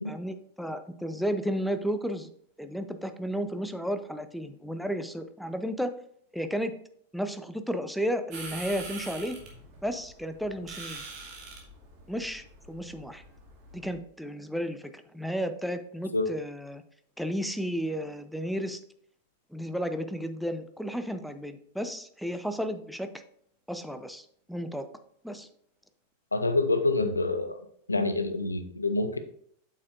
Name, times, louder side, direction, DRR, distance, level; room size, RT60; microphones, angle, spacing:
voice 1, 0.0-2.3 2.6-5.9 6.3-6.7 7.1-9.4 9.8-11.0 12.1-13.2 13.7-16.8 17.2-18.8 19.5-23.1 23.7-24.9 25.2-25.5, equal, ahead, 9 dB, 0.6 m, -33 dB
sound 1, 8.3-14.0, right 3 dB, 40° right, 2.2 m, -44 dB
voice 2, 26.3-27.6 27.9-29.2, left 2 dB, 80° left, 10 dB, 0.7 m, -27 dB
8.5 x 6.5 x 2.6 m, 0.66 s
figure-of-eight pair, 90°, 0 cm